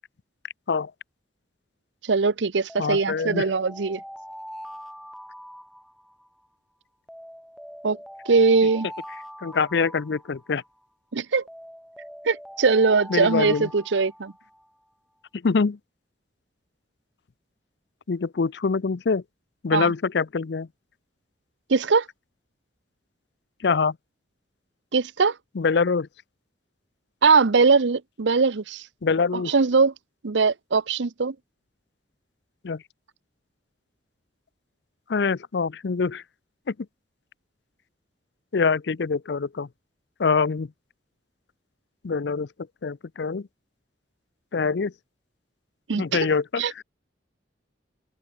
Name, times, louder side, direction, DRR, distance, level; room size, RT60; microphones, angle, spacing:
voice 1, 2.0-4.0 7.8-8.0 8.3-8.9 11.1-11.4 12.2-14.3 19.7-19.9 21.7-22.1 24.9-25.4 27.2-28.9 29.3-29.9 30.2-31.4 45.9-46.3 46.6-46.8, right 4 dB, 80° right, 0.7 m, -21 dB
Alarm, 2.7-6.4 7.1-10.8 11.5-14.7, equal, ahead, 7.4 m, -42 dB
voice 2, 2.8-3.5 9.4-10.6 13.1-13.7 15.4-15.8 18.1-19.2 19.6-20.7 23.6-23.9 25.6-26.1 29.0-29.5 32.6-32.8 35.1-36.2 36.7-36.8 38.5-39.7 40.2-40.7 42.0-42.5 42.8-43.5 44.5-44.9 46.0-46.6, left 5 dB, 65° left, 0.5 m, -24 dB
head